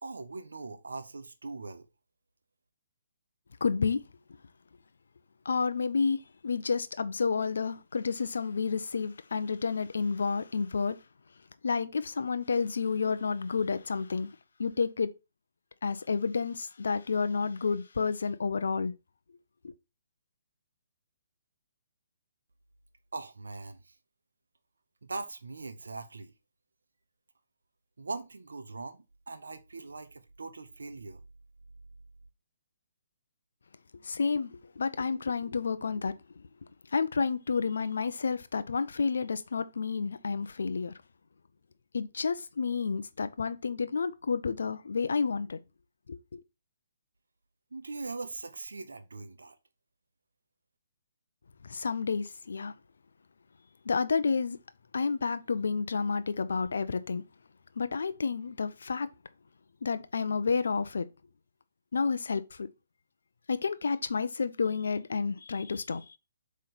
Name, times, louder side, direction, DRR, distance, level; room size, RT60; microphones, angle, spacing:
voice 1, 0.0-1.9 23.1-23.9 25.0-26.3 28.0-31.2 47.7-49.6, right 3 dB, 65° right, 0.9 m, -41 dB
voice 2, 3.6-4.0 5.4-11.0 11.6-14.3 14.6-15.1 15.8-18.9 19.6-19.7 34.0-36.1 36.9-40.9 41.9-45.6 46.1-46.4 51.6-52.7 53.8-54.6 54.9-57.2 57.8-59.1 59.8-61.1 61.9-62.7 63.5-66.2, left 5 dB, 60° left, 0.6 m, -30 dB
7.6 x 3.2 x 4.1 m
figure-of-eight pair, 130°, 0 cm